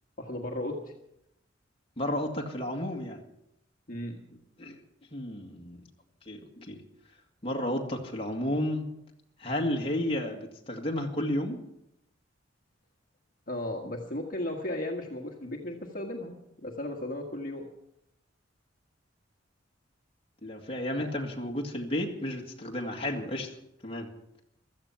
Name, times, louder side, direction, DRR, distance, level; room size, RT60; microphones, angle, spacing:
voice 1, 0.2-0.9 3.9-4.2 13.5-16.3 16.6-17.7 21.0-21.1, left 1 dB, 45° left, 1 dB, 1.7 m, -35 dB
voice 2, 2.0-3.2 4.6-4.8 5.1-5.8 6.3-6.8 7.4-8.9 9.4-11.6 20.4-23.5 23.8-24.1, left 1 dB, 30° left, 1 dB, 2.0 m, -32 dB
16.0 x 13.5 x 5.9 m, 0.80 s
head